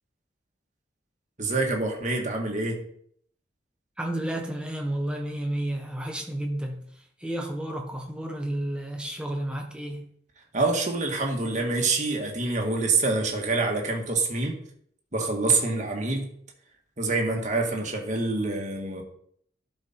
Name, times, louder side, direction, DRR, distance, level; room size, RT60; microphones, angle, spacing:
voice 1, 1.4-2.8 10.5-14.6 15.1-16.3 17.0-19.0, right 3 dB, 40° right, 1.7 m, -26 dB
voice 2, 4.0-6.9 7.2-10.1, right 1 dB, 5° right, 1.3 m, -31 dB
11.5 x 5.1 x 4.4 m
head